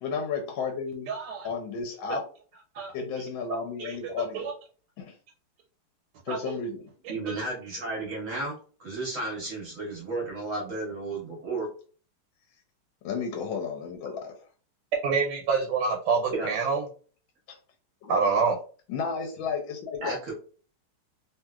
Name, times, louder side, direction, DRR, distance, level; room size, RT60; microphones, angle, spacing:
voice 1, 0.0-1.1 1.4-2.3 2.9-4.5 5.0-5.2 6.2-6.9 13.0-14.4 17.5-17.6 18.0-18.3 18.9-20.1, left 5 dB, 75° left, 2 dB, 1.2 m, -33 dB
voice 2, 1.1-1.5 2.7-2.9 3.8-4.0 4.3-4.4 6.3-6.4 7.3-7.4 15.0-16.8 18.1-18.6, right 5 dB, 85° right, 1 dB, 1.5 m, -26 dB
voice 3, 7.1-11.7 16.3-16.5 20.0-20.3, right 2 dB, 60° right, -2 dB, 0.8 m, -33 dB
3.0 x 2.7 x 2.3 m, 0.41 s
omnidirectional pair, 2.4 m